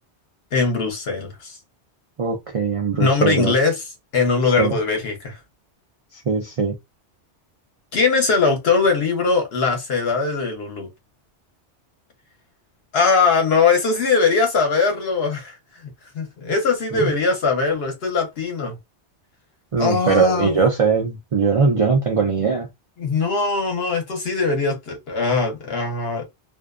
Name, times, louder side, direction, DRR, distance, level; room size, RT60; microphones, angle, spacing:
voice 1, 0.5-1.6 3.0-3.8 4.1-5.4 7.9-10.9 12.9-15.6 16.1-18.7 19.8-20.6 23.0-26.2, left 4 dB, 65° left, 1.0 m, -20 dB
voice 2, 2.2-3.5 4.6-4.7 6.3-6.7 16.9-17.1 19.7-22.7, right 5 dB, 50° right, 0.4 m, -20 dB
2.5 x 2.1 x 2.3 m
omnidirectional pair, 1.2 m